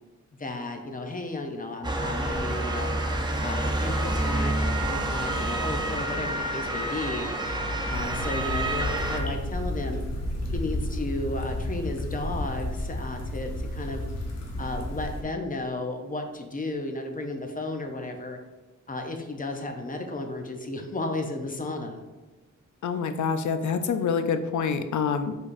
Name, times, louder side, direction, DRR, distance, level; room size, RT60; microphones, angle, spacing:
voice 1, 0.4-2.9 3.4-7.3 7.9-10.0 10.5-14.0 14.6-18.4 18.9-22.0, left 2 dB, 30° left, 4 dB, 0.5 m, -33 dB
Motor vehicle (road) / Siren, 1.8-9.2, right 1 dB, 15° right, 0.6 m, -28 dB
sound 1, 7.9-15.2, left 1 dB, 60° left, 1.0 m, -32 dB
voice 2, 22.8-25.4, left 6 dB, 75° left, 8 dB, 0.5 m, -26 dB
4.9 x 4.1 x 2.5 m, 1.2 s
wide cardioid pair, 105°, 30 cm